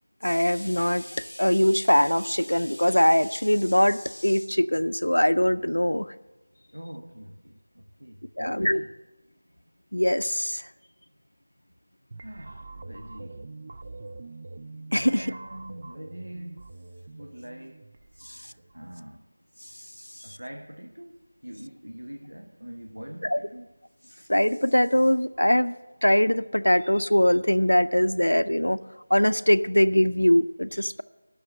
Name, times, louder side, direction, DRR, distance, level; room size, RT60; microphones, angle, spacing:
voice 1, 0.2-6.1 8.4-8.8 9.9-10.7 14.9-15.3 18.2-18.4 23.3-23.4 24.3-25.7 26.0-28.8 29.1-31.0, equal, 85° left, 0.4 m, -22 dB
voice 2, 6.7-8.9 12.2-13.4 15.0-17.9 18.3-19.3 20.2-23.7, right 1 dB, 85° right, 0.8 m, -43 dB
sound 1, 12.1-19.0, right 3 dB, 30° right, 0.3 m, -44 dB
11.0 x 6.5 x 7.4 m
figure-of-eight pair, 170°, 0 cm